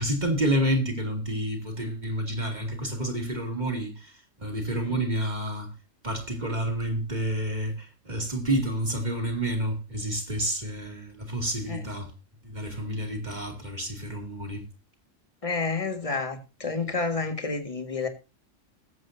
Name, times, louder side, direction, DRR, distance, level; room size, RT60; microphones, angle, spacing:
voice 1, 0.0-4.1 4.4-5.7 6.0-12.1 12.4-14.6, right 1 dB, 35° right, 2.7 m, -29 dB
voice 2, 15.4-18.1, left 4 dB, 25° left, 1.8 m, -30 dB
21.0 x 7.7 x 2.7 m
omnidirectional pair, 1.3 m